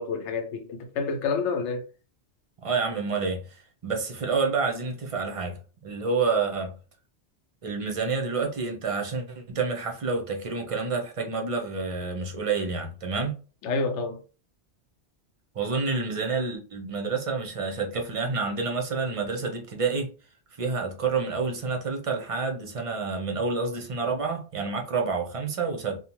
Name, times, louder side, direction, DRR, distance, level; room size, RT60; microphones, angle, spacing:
voice 1, 0.0-1.9 13.6-14.2, left 4 dB, 85° left, 0.9 m, -28 dB
voice 2, 2.6-6.7 7.6-13.4 15.5-20.1 20.6-26.0, right 4 dB, 45° right, 0.5 m, -28 dB
2.6 x 2.1 x 2.9 m
omnidirectional pair, 1.1 m